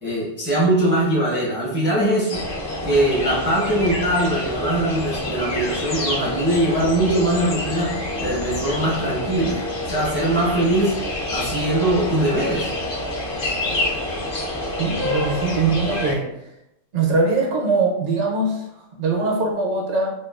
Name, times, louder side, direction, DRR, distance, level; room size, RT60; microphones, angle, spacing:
voice 1, 0.0-2.4 2.8-11.0 11.3-12.7, right 1 dB, 15° right, -6 dB, 0.4 m, -21 dB
sound 1, 2.3-16.1, left 1 dB, 55° left, 0.6 m, -27 dB
voice 2, 14.8-16.5 16.9-20.1, right 3 dB, 70° right, -1 dB, 1.0 m, -22 dB
2.9 x 2.3 x 2.3 m, 0.86 s
omnidirectional pair, 1.3 m